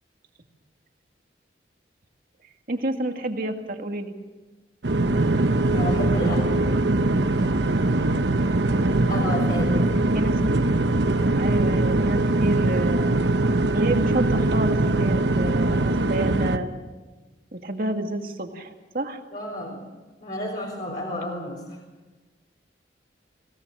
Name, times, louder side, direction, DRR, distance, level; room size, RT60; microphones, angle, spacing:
voice 1, 2.7-4.1 8.5-9.1 10.1-10.6 11.3-13.1 13.7-16.7 17.5-19.2, right 2 dB, 50° right, 4 dB, 2.1 m, -29 dB
sound 1, 4.8-16.6, right 2 dB, 70° right, 1.1 m, -22 dB
voice 2, 5.7-6.7 9.1-10.0 19.3-19.9 20.2-21.8, left 1 dB, 50° left, -2 dB, 3.8 m, -31 dB
25.5 x 17.0 x 6.4 m, 1.3 s
head